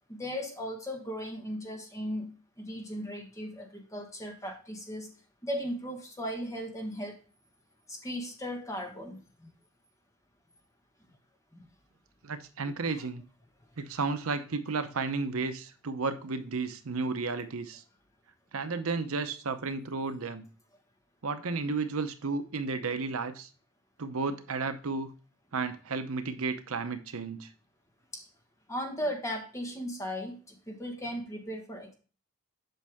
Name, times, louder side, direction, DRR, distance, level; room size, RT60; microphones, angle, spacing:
voice 1, 0.1-5.1 5.4-7.2 7.9-9.5 11.6-11.7 12.9-13.0 28.1-28.3 28.7-31.9, equal, 15° left, 3 dB, 1.3 m, -37 dB
voice 2, 12.2-13.2 13.8-17.8 18.5-20.4 21.2-23.5 24.0-25.1 25.5-27.5, right 4 dB, 70° right, 9 dB, 0.7 m, -33 dB
7.9 x 5.4 x 3.5 m, 0.37 s
head